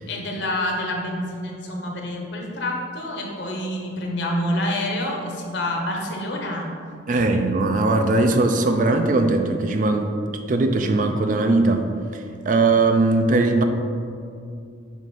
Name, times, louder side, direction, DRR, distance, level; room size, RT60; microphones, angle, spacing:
voice 1, 0.1-6.7 7.1-7.3, left 1 dB, 70° left, 0 dB, 1.0 m, -27 dB
voice 2, 7.1-10.1 10.5-13.6, right 2 dB, 45° right, 6 dB, 0.4 m, -20 dB
7.4 x 2.5 x 5.3 m, 2.4 s
head